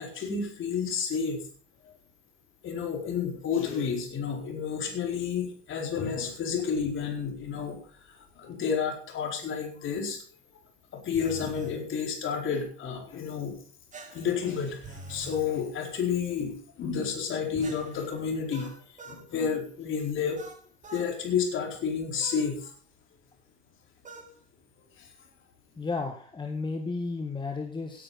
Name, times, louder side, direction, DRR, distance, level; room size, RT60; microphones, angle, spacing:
voice 1, 0.0-1.4 1.8-2.0 2.6-7.8 8.1-10.2 10.9-13.6 14.1-18.7 19.1-20.4 20.9-22.7 25.0-25.1, left 6 dB, 35° left, 3 dB, 4.5 m, -30 dB
sound 1, 11.1-11.8 13.9-15.5 17.6-19.3 20.4-21.1 22.2-22.5 24.0-24.3, right 2 dB, 20° right, 3.2 m, -45 dB
voice 2, 25.8-28.0, left 3 dB, 15° left, 4 dB, 1.7 m, -33 dB
17.0 x 10.0 x 4.1 m, 0.43 s
figure-of-eight pair, 75°, 34 cm